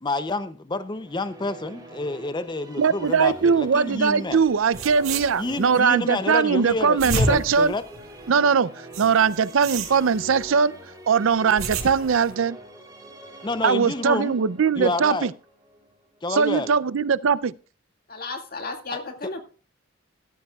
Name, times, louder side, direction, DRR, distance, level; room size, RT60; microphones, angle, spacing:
voice 1, 0.0-4.4 5.4-7.8 13.4-14.3 14.8-15.3 16.2-16.7 19.2-19.4, left 2 dB, 20° left, 0.5 m, -29 dB
sound 1, 0.8-16.9, right 1 dB, 20° right, 2.8 m, -44 dB
voice 2, 2.8-7.7 8.3-10.8 11.1-12.6 13.6-15.3 16.3-17.5, right 6 dB, 70° right, 0.5 m, -21 dB
sound 2, 4.4-4.5 4.7-5.8 6.7-8.4 8.9-10.5 11.3-12.3, right 3 dB, 85° right, 1.8 m, -30 dB
voice 3, 18.1-19.4, left 3 dB, 45° left, 2.1 m, -33 dB
14.0 x 13.5 x 2.3 m
head